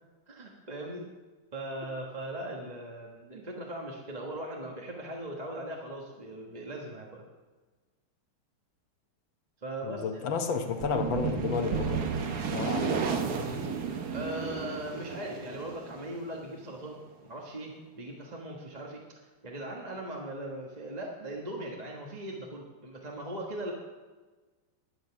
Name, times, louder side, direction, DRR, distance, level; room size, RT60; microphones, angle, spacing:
voice 1, 0.3-1.1 1.5-7.2 9.6-10.3 14.1-19.0 19.4-23.7, right 1 dB, 25° right, -1 dB, 1.1 m, -39 dB
voice 2, 9.8-12.1 12.5-13.0, left 5 dB, 65° left, 6 dB, 1.7 m, -31 dB
sound 1, 10.5-17.2, right 5 dB, 55° right, 1.4 m, -35 dB
sound 2, 10.8-15.0, right 8 dB, 85° right, 1.7 m, -35 dB
12.0 x 9.3 x 5.9 m, 1.3 s
omnidirectional pair, 2.4 m